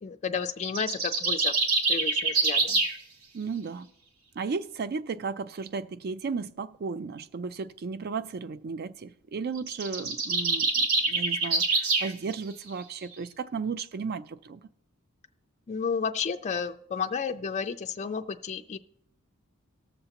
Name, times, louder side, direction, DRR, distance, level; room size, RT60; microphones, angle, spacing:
voice 1, 0.0-1.5 1.9-2.8 15.7-18.8, left 6 dB, 30° left, 0.3 m, -32 dB
sound 1, 0.6-3.0 9.6-12.1, right 3 dB, 75° right, 1.1 m, -26 dB
voice 2, 3.3-3.9 4.4-14.6, right 5 dB, 45° right, 0.4 m, -34 dB
19.0 x 6.8 x 2.9 m
head